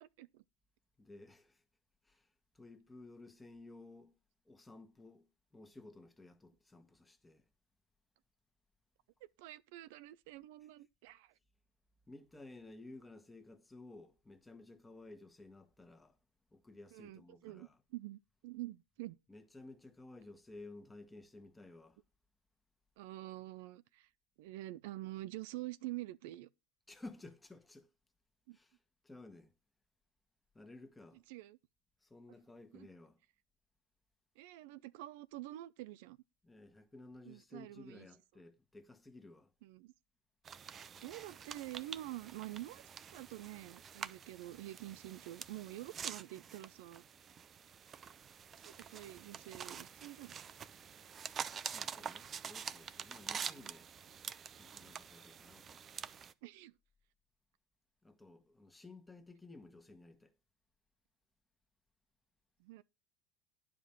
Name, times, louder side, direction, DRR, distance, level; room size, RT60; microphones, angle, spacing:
voice 1, 0.0-0.4 9.2-11.3 16.9-19.2 23.0-24.1 24.4-26.5 28.5-28.6 31.3-31.6 32.7-32.9 34.4-36.2 37.3-38.1 39.6-39.9 41.0-42.8 43.1-47.0 48.7-50.3 53.4-53.7 56.4-56.7 62.6-62.8, right 16 dB, 70° right, 0.5 m, -47 dB
voice 2, 1.0-1.6 2.0-4.2 4.4-7.5 12.1-16.2 16.5-17.8 19.3-22.0 26.9-27.9 28.5-29.5 30.5-31.2 32.0-33.2 36.4-39.5 51.7-53.9 54.6-55.8 58.0-60.3, left 2 dB, 10° left, 1.4 m, -55 dB
sound 1, 40.4-56.3, right 7 dB, 30° right, 0.6 m, -47 dB
10.0 x 5.1 x 5.7 m
supercardioid pair, 115°, 0 cm